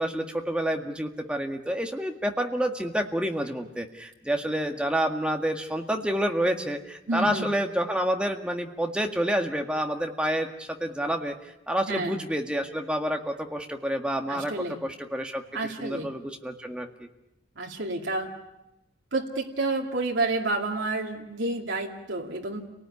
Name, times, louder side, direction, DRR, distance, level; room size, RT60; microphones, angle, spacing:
voice 1, 0.0-11.3 11.7-14.5 14.8-17.1, equal, 5° right, 3 dB, 1.8 m, -28 dB
voice 2, 7.1-7.5 11.9-12.2 14.3-14.8 15.5-16.1 17.6-18.3 19.1-22.6, right 2 dB, 70° right, 0 dB, 2.4 m, -29 dB
29.5 x 19.0 x 9.7 m, 0.92 s
head